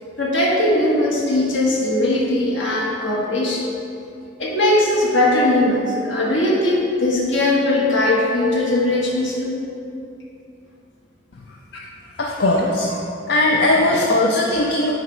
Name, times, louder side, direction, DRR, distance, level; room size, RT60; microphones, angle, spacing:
voice 1, 0.2-3.6 4.4-9.6 11.7-11.8, left 1 dB, 75° left, -4 dB, 1.4 m, -19 dB
voice 2, 12.2-14.9, left 1 dB, 55° left, -2 dB, 0.5 m, -19 dB
8.7 x 3.3 x 4.7 m, 2.6 s
head